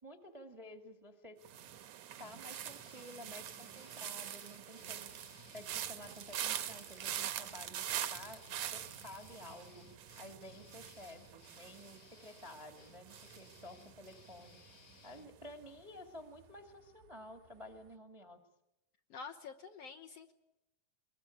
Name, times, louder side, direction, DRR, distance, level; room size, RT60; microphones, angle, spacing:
voice 1, 0.0-1.4 2.2-8.4 8.7-14.6 15.0-18.4, left 1 dB, 15° right, 5 dB, 1.0 m, -52 dB
sound 1, 1.4-14.5 14.7-15.2, right 11 dB, 65° right, 1.9 m, -44 dB
sound 2, 2.2-15.3, left 5 dB, 50° left, 1.9 m, -62 dB
sound 3, 5.0-18.0, right 2 dB, 90° right, 3.4 m, -66 dB
voice 2, 19.1-20.3, left 5 dB, 65° left, 2 dB, 1.7 m, -48 dB
24.0 x 21.0 x 9.7 m, 0.94 s
omnidirectional pair, 3.9 m